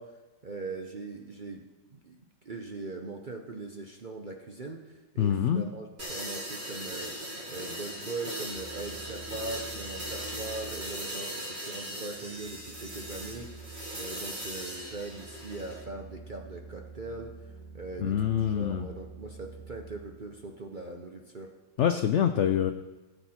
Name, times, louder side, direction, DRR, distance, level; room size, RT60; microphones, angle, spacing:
voice 1, 0.0-7.2 7.5-21.5, right 3 dB, 45° right, 2 dB, 0.6 m, -41 dB
voice 2, 5.2-5.6 18.0-18.9 21.8-22.7, left 9 dB, 75° left, 8 dB, 0.6 m, -25 dB
sound 1, 6.0-15.8, right 1 dB, 25° right, 2.4 m, -39 dB
sound 2, 8.4-20.9, right 4 dB, 80° right, 4.6 m, -48 dB
18.0 x 8.1 x 4.3 m, 1.2 s
omnidirectional pair, 1.9 m